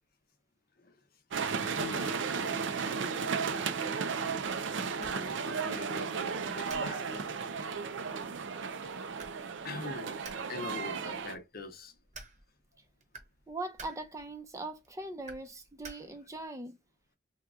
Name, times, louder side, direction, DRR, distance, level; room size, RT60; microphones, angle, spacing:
sound 1, 1.3-11.3, right 5 dB, 85° right, 0.5 m, -34 dB
voice 1, 1.6-2.4 5.0-7.3 9.6-12.0, left 3 dB, 55° left, 0.7 m, -43 dB
sound 2, 6.5-16.5, right 3 dB, 40° right, 0.9 m, -54 dB
voice 2, 13.5-16.8, right 2 dB, 15° right, 0.5 m, -41 dB
2.9 x 2.2 x 3.6 m
head